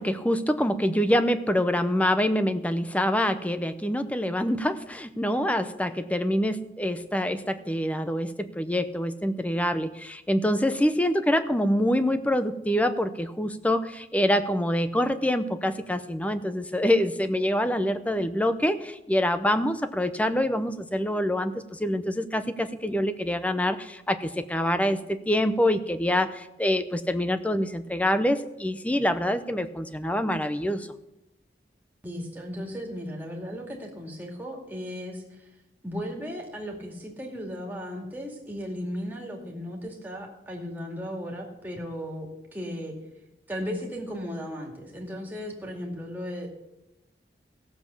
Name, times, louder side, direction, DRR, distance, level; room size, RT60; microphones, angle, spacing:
voice 1, 0.0-30.9, equal, 10° left, 10 dB, 0.6 m, -26 dB
voice 2, 32.0-35.2 35.8-43.0 43.5-46.5, equal, 10° right, -1 dB, 2.3 m, -36 dB
15.5 x 7.2 x 6.9 m, 0.95 s
head